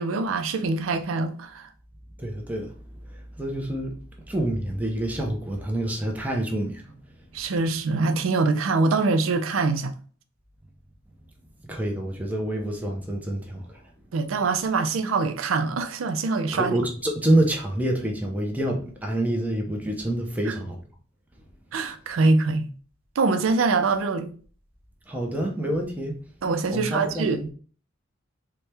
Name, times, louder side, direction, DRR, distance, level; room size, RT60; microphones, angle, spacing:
voice 1, 0.0-1.7 7.3-9.9 14.1-16.8 20.5-20.6 21.7-22.7 23.2-24.3 26.4-27.4, right 3 dB, 85° right, 0.4 m, -24 dB
voice 2, 2.2-2.7 3.4-3.9 4.3-7.0 11.7-13.6 16.5-20.8 25.1-26.2 26.7-27.5, right 1 dB, 10° right, 0.6 m, -27 dB
4.4 x 2.2 x 3.3 m
head